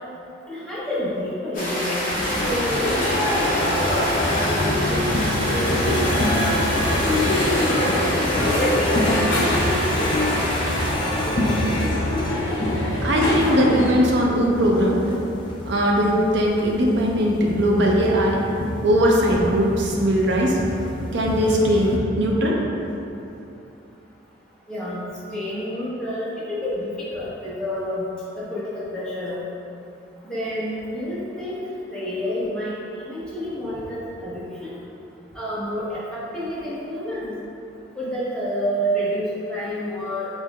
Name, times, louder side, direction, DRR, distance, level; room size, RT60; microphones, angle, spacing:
voice 1, 0.5-2.1 2.4-4.6 4.9-8.0 8.4-9.8 24.7-25.0 25.3-28.1 28.4-29.4 30.2-31.6 31.9-34.7 35.3-37.3 38.0-40.3, equal, 5° left, -10 dB, 0.8 m, -29 dB
sound 1, 1.5-10.9, equal, 40° left, 0.8 m, -28 dB
sound 2, 2.1-13.9, left 1 dB, 75° left, 0.7 m, -26 dB
sound 3, 2.1-22.0, left 1 dB, 25° left, 0.3 m, -26 dB
voice 2, 13.0-15.2 15.7-18.4 18.8-20.6 21.1-22.6, equal, 60° right, -1 dB, 0.5 m, -20 dB
5.3 x 3.1 x 2.3 m, 2.8 s
head